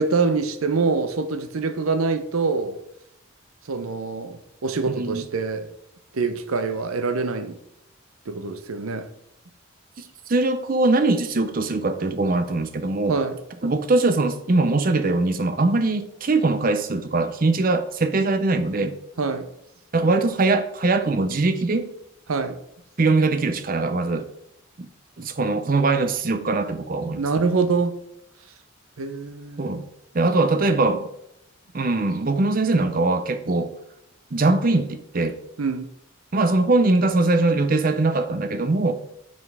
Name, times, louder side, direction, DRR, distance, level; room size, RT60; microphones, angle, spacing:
voice 1, 0.0-2.8 3.7-5.7 6.1-7.6 8.3-9.1 13.1-13.4 19.2-19.5 22.3-22.6 27.2-28.0 29.0-29.7 35.6-35.9, right 4 dB, 85° right, 0.7 m, -25 dB
voice 2, 4.9-5.3 10.3-13.2 13.6-18.9 19.9-21.9 23.0-24.3 24.8-24.9 25.2-27.2 29.6-29.8 30.1-31.1 31.7-33.7 34.3-35.4 36.3-38.9, right 2 dB, 40° right, 0.6 m, -21 dB
5.7 x 5.2 x 4.7 m
head